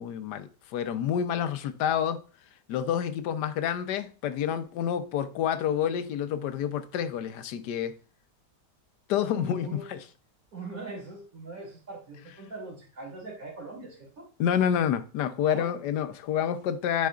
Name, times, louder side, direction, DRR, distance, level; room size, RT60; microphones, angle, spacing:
voice 1, 0.0-2.2 2.7-8.0 9.1-10.0 14.4-17.1, left 9 dB, 80° left, 1.2 m, -28 dB
voice 2, 9.3-9.9 10.5-14.3 15.4-15.7, right 3 dB, 55° right, 3.1 m, -41 dB
9.4 x 4.5 x 2.4 m
omnidirectional pair, 1.8 m